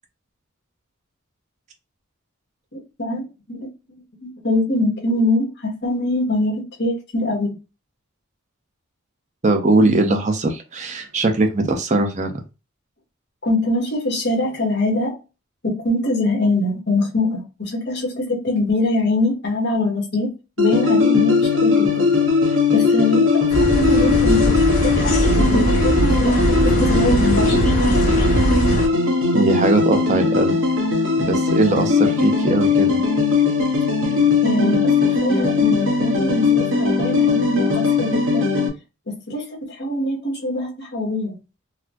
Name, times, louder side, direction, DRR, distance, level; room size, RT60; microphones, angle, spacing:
voice 1, 2.7-3.7 4.2-7.6 13.4-15.2 15.6-20.3 20.6-22.0 22.5-27.6 34.0-38.5 39.1-41.4, left 2 dB, 50° left, 1.4 m, -23 dB
voice 2, 9.4-12.4 29.3-30.6 31.2-33.0, right 2 dB, 35° right, 0.6 m, -20 dB
sound 1, 20.6-38.7, left 4 dB, 65° right, 1.1 m, -19 dB
sound 2, 23.5-28.9, equal, 35° left, 1.1 m, -20 dB
4.0 x 2.1 x 2.8 m
head